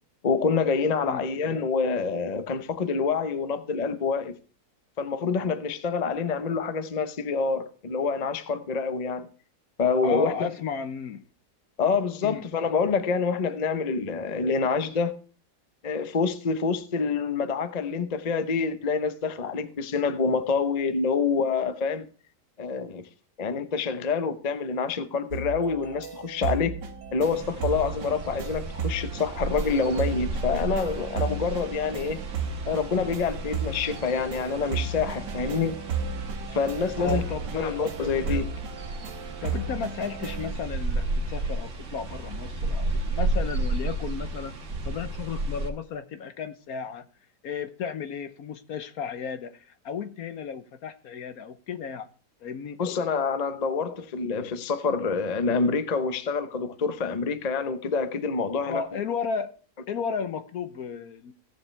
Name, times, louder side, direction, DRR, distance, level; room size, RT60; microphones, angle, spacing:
voice 1, 0.2-4.4 5.0-9.3 9.8-10.5 11.8-15.1 15.8-22.0 22.6-23.1 23.4-26.7 27.1-32.2 32.6-35.7 36.5-37.2 37.6-38.5 52.8-58.8, left 5 dB, 35° left, 0.7 m, -27 dB
voice 2, 10.0-11.2 12.2-12.5 35.3-35.6 37.0-37.8 38.3-38.4 39.4-44.6 44.8-47.1 47.4-52.1 52.4-52.8 58.7-59.6 59.9-61.3, left 6 dB, 65° left, 1.2 m, -34 dB
sound 1, 25.3-40.5, right 5 dB, 90° right, 1.8 m, -34 dB
sound 2, 27.2-45.7, right 2 dB, 50° right, 1.6 m, -33 dB
17.0 x 7.2 x 3.2 m
omnidirectional pair, 1.8 m